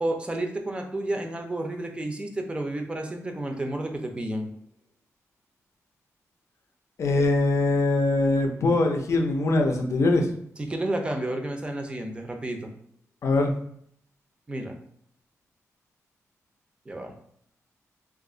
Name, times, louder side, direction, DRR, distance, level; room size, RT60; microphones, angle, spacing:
voice 1, 0.0-4.5 10.6-12.7 14.5-14.8 16.9-17.1, right 1 dB, 20° right, 3 dB, 0.5 m, -31 dB
voice 2, 7.0-10.3 13.2-13.5, left 2 dB, 60° left, 2 dB, 0.5 m, -22 dB
2.7 x 2.4 x 3.7 m, 0.67 s
wide cardioid pair, 115°, 6 cm